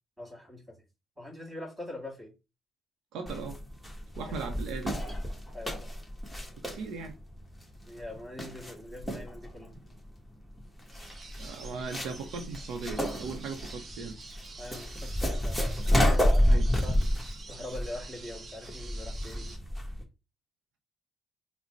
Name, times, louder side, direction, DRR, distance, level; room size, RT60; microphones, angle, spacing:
voice 1, 0.2-0.8 1.2-2.3 5.5-5.9 7.9-9.7 14.6-15.6 15.9-17.0 17.5-19.5, left 1 dB, 20° right, 2.2 m, -42 dB
voice 2, 3.1-3.6 4.2-5.0 6.6-7.2 11.4-14.1 16.5-16.7, right 4 dB, 90° right, 0.7 m, -38 dB
sound 1, 3.3-20.0, equal, 5° left, 1.2 m, -30 dB
sound 2, 10.9-19.6, right 3 dB, 45° right, 0.8 m, -48 dB
3.8 x 2.2 x 4.4 m
cardioid pair, 90°, 0 cm